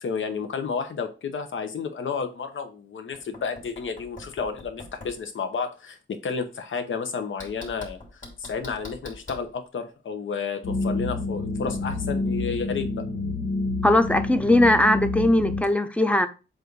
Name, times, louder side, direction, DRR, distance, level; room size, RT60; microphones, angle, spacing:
voice 1, 0.0-12.9, left 5 dB, 70° left, 1.0 m, -31 dB
Knock, 3.1-5.2 7.4-9.5 11.7-12.2, left 2 dB, 40° left, 2.7 m, -43 dB
sound 1, 10.6-15.6, left 2 dB, 85° left, 1.7 m, -28 dB
voice 2, 13.8-16.3, left 1 dB, 5° left, 0.5 m, -19 dB
7.6 x 2.6 x 4.6 m
wide cardioid pair, 150°, 21 cm